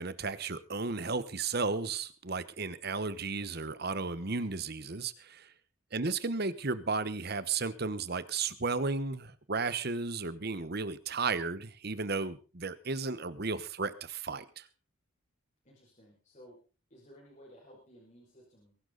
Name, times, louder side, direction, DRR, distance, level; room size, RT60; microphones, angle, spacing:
voice 1, 0.0-5.5 5.9-14.7, right 4 dB, 50° right, 15 dB, 1.1 m, -34 dB
voice 2, 15.6-16.6 16.9-18.7, equal, 35° left, -4 dB, 5.7 m, -56 dB
22.5 x 11.5 x 4.0 m, 0.35 s
head